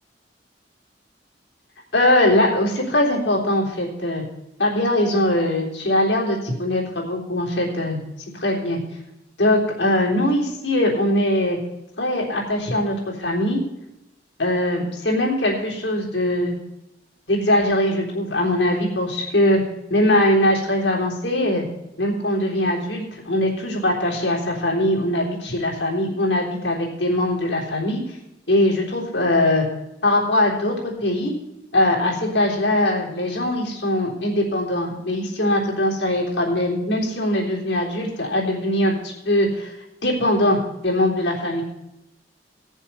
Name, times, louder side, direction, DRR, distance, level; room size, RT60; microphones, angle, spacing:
voice 1, 1.9-4.2 4.6-8.0 8.4-8.8 9.4-11.6 12.0-13.6 14.4-16.6 17.3-19.6 19.9-21.6 22.0-28.0 28.5-29.6 30.0-31.3 31.7-39.7 40.0-41.6, left 1 dB, 85° left, -2 dB, 3.6 m, -21 dB
17.5 x 7.2 x 5.7 m, 0.88 s
head